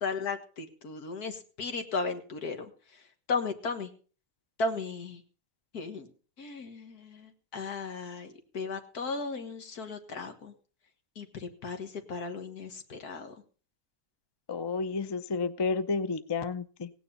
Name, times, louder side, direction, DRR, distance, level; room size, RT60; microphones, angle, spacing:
voice 1, 0.0-2.7 3.3-3.9 4.6-5.2 5.7-6.1 6.4-10.5 11.2-13.3, left 4 dB, 90° left, 7 dB, 2.1 m, -35 dB
voice 2, 14.5-16.9, left 4 dB, 40° left, 14 dB, 0.3 m, -31 dB
17.0 x 9.4 x 5.4 m, 0.40 s
omnidirectional pair, 1.6 m